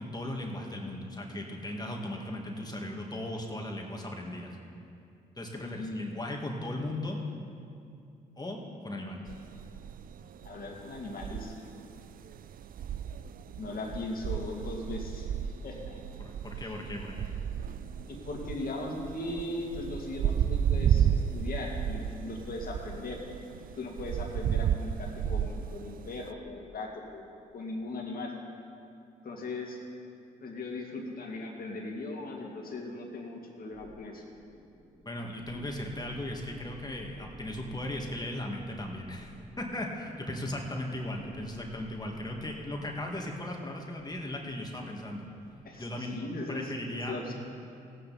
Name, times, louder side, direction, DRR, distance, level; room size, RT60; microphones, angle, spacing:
voice 1, 0.0-4.5 5.4-7.2 8.4-9.2 16.2-17.3 35.0-45.3 45.8-46.2 46.5-47.3, left 1 dB, 20° left, 0 dB, 2.0 m, -37 dB
voice 2, 5.6-6.2 10.4-11.5 13.5-15.3 15.6-16.0 16.6-16.7 18.1-23.2 23.8-27.2 27.5-28.3 29.2-29.8 30.4-34.2 45.6-47.3, left 2 dB, 55° left, 0 dB, 2.4 m, -38 dB
sound 1, 9.3-26.3, right 9 dB, 50° right, 0.4 m, -33 dB
sound 2, 33.7-45.9, right 1 dB, 10° right, 2.7 m, -55 dB
16.5 x 9.0 x 4.2 m, 2.5 s
supercardioid pair, 60°, 18 cm